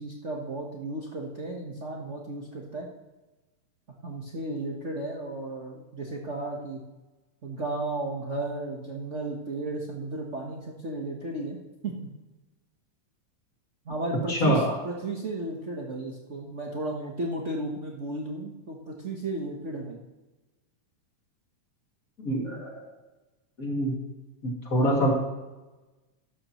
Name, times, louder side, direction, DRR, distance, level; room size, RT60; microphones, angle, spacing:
voice 1, 0.0-2.9 4.0-6.8 7.4-11.9 13.8-20.0, right 2 dB, 85° right, -1 dB, 0.6 m, -34 dB
voice 2, 14.3-14.7 22.2-22.8 23.6-23.9 24.4-25.1, equal, 30° left, -2 dB, 2.6 m, -25 dB
13.5 x 12.0 x 3.1 m, 1.1 s
omnidirectional pair, 3.3 m